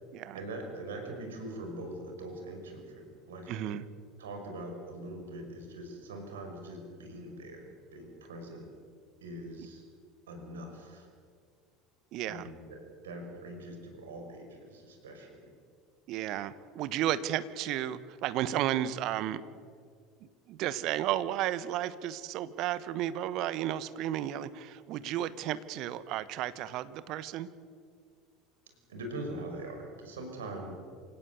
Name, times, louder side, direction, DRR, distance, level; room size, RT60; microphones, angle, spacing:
voice 1, 0.3-3.6 4.2-8.7 9.2-9.8 10.3-11.1 12.2-15.5 28.9-30.7, right 1 dB, 75° right, 4 dB, 5.6 m, -42 dB
voice 2, 3.5-3.8 12.1-12.5 16.1-19.4 20.5-27.5, right 12 dB, 50° right, 15 dB, 1.2 m, -33 dB
27.5 x 17.0 x 8.3 m, 2.1 s
figure-of-eight pair, 70°, 0 cm